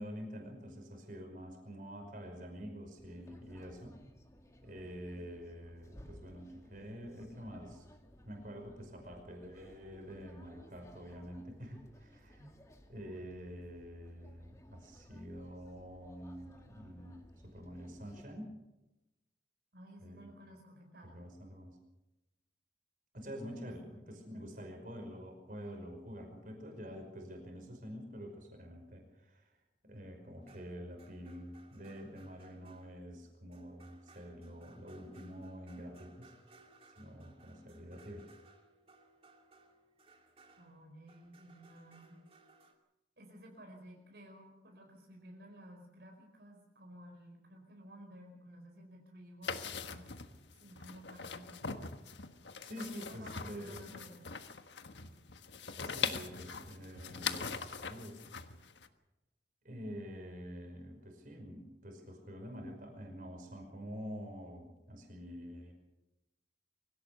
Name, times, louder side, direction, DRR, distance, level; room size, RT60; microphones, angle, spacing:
voice 1, 0.0-4.0 4.6-7.9 8.2-12.4 12.9-18.5 20.0-20.3 21.1-21.8 23.1-36.4 37.0-38.3 52.6-53.9 55.7-58.3 59.6-65.7, equal, 45° right, 4 dB, 5.5 m, -47 dB
sound 1, 3.0-18.2, equal, 15° left, 2.2 m, -59 dB
voice 2, 19.7-21.2 23.9-24.7 40.6-42.2 43.2-50.1 50.5-51.6 52.7-54.4, equal, 65° right, 1 dB, 4.7 m, -54 dB
sound 2, 30.4-42.7, right 3 dB, 30° right, 2.7 m, -63 dB
sound 3, 49.4-58.9, left 6 dB, 80° left, 1.4 m, -41 dB
24.5 x 16.5 x 6.8 m, 0.99 s
head